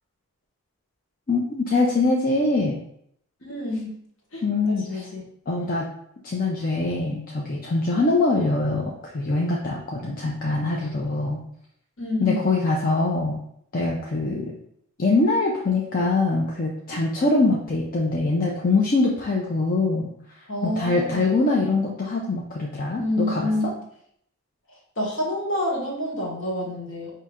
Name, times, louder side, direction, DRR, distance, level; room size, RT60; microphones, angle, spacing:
voice 1, 1.3-2.8 4.4-5.0 5.5-5.9 6.2-11.4 12.2-13.4 13.7-14.5 15.0-20.1 20.6-23.7, left 3 dB, 40° left, -2 dB, 0.5 m, -23 dB
voice 2, 3.4-3.9 4.3-5.2 12.0-12.5 20.5-21.3 22.9-23.7 25.0-27.1, left 1 dB, 60° left, -2 dB, 1.3 m, -28 dB
5.3 x 2.8 x 3.5 m, 0.70 s
head